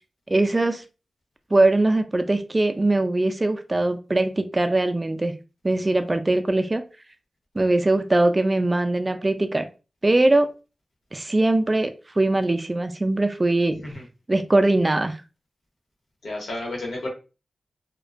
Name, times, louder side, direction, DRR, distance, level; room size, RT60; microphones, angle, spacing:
voice 1, 0.3-0.8 1.5-5.3 5.6-6.8 7.6-9.6 10.0-10.5 11.1-11.9 12.2-13.8 14.3-15.2, right 2 dB, 30° right, 8 dB, 0.3 m, -21 dB
voice 2, 13.7-14.0 16.2-17.1, left 2 dB, 85° left, -1 dB, 0.9 m, -32 dB
2.4 x 2.2 x 2.3 m, 0.32 s
cardioid pair, 60°, 0 cm